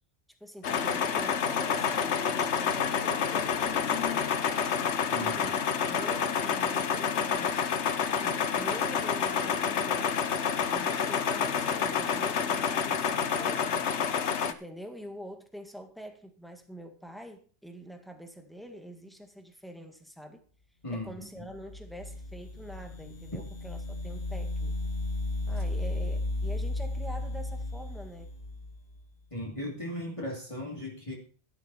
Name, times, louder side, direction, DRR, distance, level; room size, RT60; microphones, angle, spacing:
voice 1, 0.4-5.6 5.8-7.8 8.2-10.2 10.7-13.9 14.5-20.4 20.9-24.8 25.5-28.4, equal, ahead, 1.9 m, -45 dB
sound 1, 0.6-14.5, left 7 dB, 75° left, 1.2 m, -28 dB
voice 2, 5.1-5.6 20.8-21.5 29.3-31.2, left 1 dB, 25° left, 2.8 m, -37 dB
sound 2, 21.5-29.0, left 2 dB, 55° left, 1.3 m, -34 dB
12.5 x 11.0 x 4.4 m
omnidirectional pair, 1.2 m